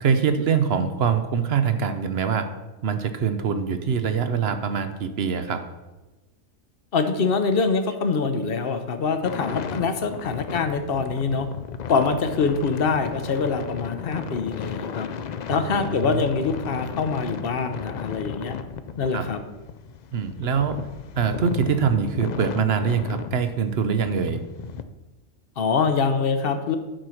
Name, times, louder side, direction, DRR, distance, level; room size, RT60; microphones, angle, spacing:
voice 1, 0.0-2.5 2.8-5.6 15.5-16.2 19.1-19.2 20.1-20.8 21.2-24.4, right 6 dB, 55° right, 9 dB, 0.9 m, -24 dB
voice 2, 6.9-11.5 11.9-15.1 15.5-18.6 19.0-19.4 25.6-26.8, left 4 dB, 50° left, 8 dB, 0.9 m, -24 dB
sound 1, 9.2-24.8, left 7 dB, 70° left, 0.4 m, -35 dB
10.5 x 4.5 x 6.3 m, 1.1 s
omnidirectional pair, 1.3 m